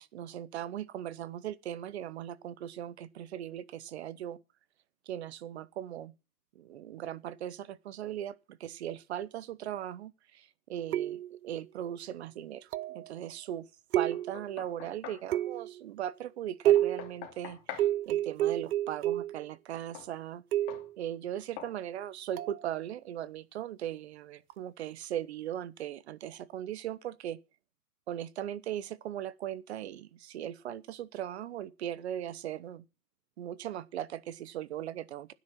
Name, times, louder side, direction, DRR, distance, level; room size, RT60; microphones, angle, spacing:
voice 1, 0.0-4.4 5.1-6.1 6.5-13.7 13.9-20.4 21.0-27.4 28.1-32.8 33.4-35.3, right 11 dB, 45° right, 1.0 m, -39 dB
sound 1, 10.9-11.5 12.7-13.1 13.9-14.5 15.3-15.8 16.7-17.1 17.8-19.4 20.5-20.9 22.4-22.6, right 13 dB, 70° right, 0.6 m, -29 dB
Knock, 14.1-15.3 16.8-17.9 19.9-20.1 20.7-20.9 21.6-21.8, left 10 dB, 25° left, 2.7 m, -45 dB
12.5 x 9.8 x 5.8 m
hypercardioid pair, 155°, 46 cm